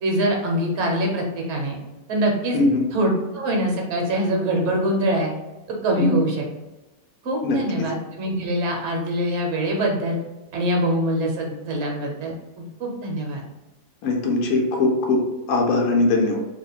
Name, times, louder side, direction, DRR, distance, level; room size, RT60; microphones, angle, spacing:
voice 1, 0.0-1.7 2.1-2.6 2.9-5.3 5.7-6.4 7.2-10.2 10.5-13.4, right 1 dB, 55° right, 0 dB, 1.0 m, -24 dB
voice 2, 2.5-2.9 6.0-6.2 7.4-7.6 14.0-16.4, left 2 dB, 75° left, 0 dB, 1.1 m, -21 dB
2.9 x 2.4 x 3.9 m, 1.1 s
omnidirectional pair, 1.6 m